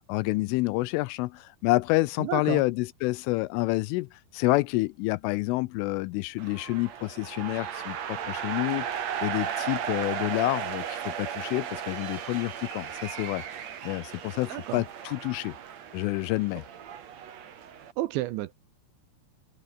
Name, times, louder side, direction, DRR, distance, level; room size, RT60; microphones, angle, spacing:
voice 1, 0.0-13.4 13.8-15.5 15.9-16.6, left 21 dB, 85° left, 3.0 m, -28 dB
voice 2, 2.2-2.6 14.5-14.8 18.0-18.5, right 16 dB, 80° right, 2.8 m, -31 dB
sound 1, 6.4-17.9, right 9 dB, 55° right, 1.9 m, -36 dB
omnidirectional pair, 5.9 m